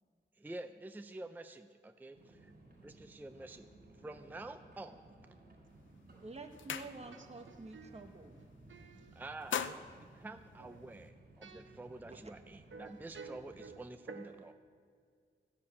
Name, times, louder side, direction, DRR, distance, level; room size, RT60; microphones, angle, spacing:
voice 1, 0.4-2.5 2.8-3.7 4.0-5.1 9.1-14.5, right 2 dB, 10° right, 0.5 m, -48 dB
sound 1, 2.1-13.7, right 2 dB, 50° right, 4.5 m, -59 dB
sound 2, 5.7-5.9 6.2-7.4 7.8-8.0 8.3-8.9 9.2-11.1, left 8 dB, 80° left, 0.5 m, -42 dB
voice 2, 6.2-8.4 12.1-12.6, right 3 dB, 35° right, 1.3 m, -50 dB
voice 3, 7.5-8.2 8.7-9.2 10.6-10.8 11.4-11.8 12.7-14.5, right 4 dB, 85° right, 1.0 m, -52 dB
14.5 x 6.8 x 8.3 m
wide cardioid pair, 90°, 19 cm